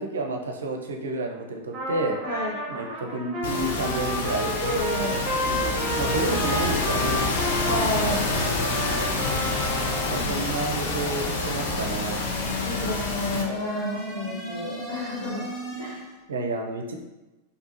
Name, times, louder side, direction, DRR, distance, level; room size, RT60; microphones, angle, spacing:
voice 1, 0.0-2.2 2.7-4.5 5.5-7.2 10.1-12.3 16.3-17.0, right 2 dB, 65° right, 3 dB, 0.5 m, -30 dB
Trumpet, 1.7-10.2, equal, 20° right, 1.2 m, -31 dB
sound 1, 3.4-13.4, left 3 dB, 55° left, 0.6 m, -28 dB
sound 2, 4.5-16.2, left 1 dB, 5° left, 0.9 m, -37 dB
voice 2, 4.6-5.2 7.7-8.2 10.1-10.5 12.6-15.4 15.8-16.0, equal, 80° left, -8 dB, 1.5 m, -30 dB
4.3 x 2.7 x 2.9 m, 1.1 s
figure-of-eight pair, 90°, 0 cm